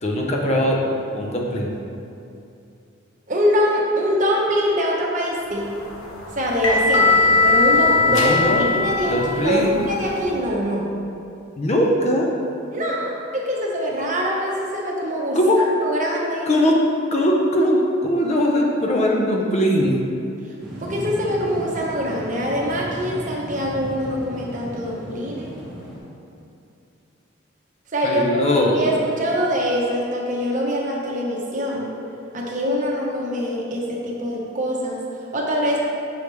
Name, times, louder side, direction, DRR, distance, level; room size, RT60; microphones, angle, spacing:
voice 1, 0.0-0.8 1.1-1.7 8.0-9.8 11.6-12.3 15.3-15.6 16.5-16.8 17.1-20.0 28.0-28.9, equal, 30° left, -1 dB, 0.5 m, -20 dB
voice 2, 3.3-5.8 6.3-9.1 9.4-10.9 12.7-15.4 15.8-16.5 20.8-25.6 27.9-31.9 32.3-35.8, equal, 40° right, -2 dB, 0.8 m, -24 dB
sound 1, 5.5-10.4, left 3 dB, 85° left, 0.9 m, -20 dB
sound 2, 20.6-26.0, equal, ahead, 1.2 m, -35 dB
6.3 x 5.0 x 3.2 m, 2.6 s
head